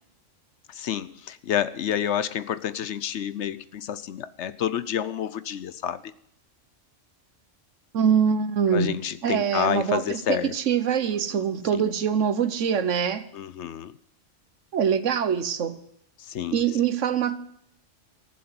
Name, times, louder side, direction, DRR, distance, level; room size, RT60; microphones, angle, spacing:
voice 1, 0.7-6.1 8.7-10.5 11.3-11.4 11.7-11.9 13.3-13.9 16.2-16.6, left 9 dB, 65° left, 16 dB, 1.0 m, -29 dB
voice 2, 7.9-8.9 9.2-13.2 14.7-15.8 16.5-17.4, right 7 dB, 75° right, 13 dB, 1.3 m, -24 dB
14.5 x 7.7 x 9.5 m, 0.71 s
omnidirectional pair, 1.3 m